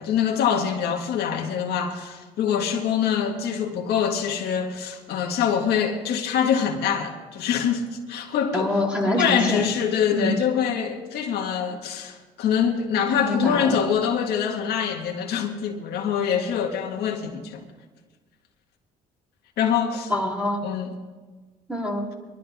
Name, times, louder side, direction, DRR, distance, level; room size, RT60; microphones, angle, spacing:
voice 1, 0.0-8.8 9.2-17.6 19.6-20.1 20.6-20.9, left 8 dB, 75° left, 1.8 m, -24 dB
voice 2, 8.5-9.6 10.1-10.3 13.1-13.8 20.1-20.6 21.7-22.0, left 1 dB, 5° right, 3.6 m, -25 dB
22.5 x 13.0 x 3.6 m
cardioid pair, 110°, 17 cm